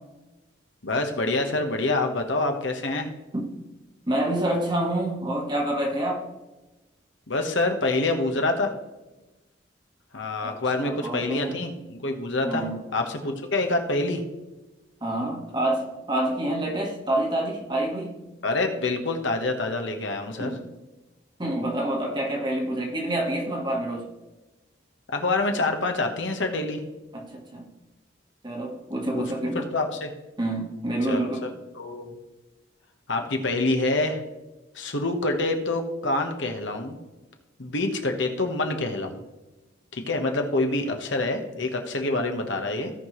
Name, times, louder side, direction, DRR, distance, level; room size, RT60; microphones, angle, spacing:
voice 1, 0.8-3.1 7.3-8.7 10.1-12.6 12.9-14.2 18.4-20.5 25.1-26.8 29.1-30.1 31.1-31.5 31.7-32.1 33.1-34.2 34.7-37.0 37.6-39.2 39.9-42.9, left 2 dB, 70° left, 4 dB, 1.3 m, -26 dB
voice 2, 4.1-6.2 10.4-11.6 12.4-12.8 15.0-18.2 20.4-20.6 21.4-24.1 27.1-27.7 28.4-29.7 30.4-31.5, right 1 dB, 25° right, 0 dB, 1.3 m, -27 dB
16.5 x 5.9 x 3.1 m, 1.1 s
head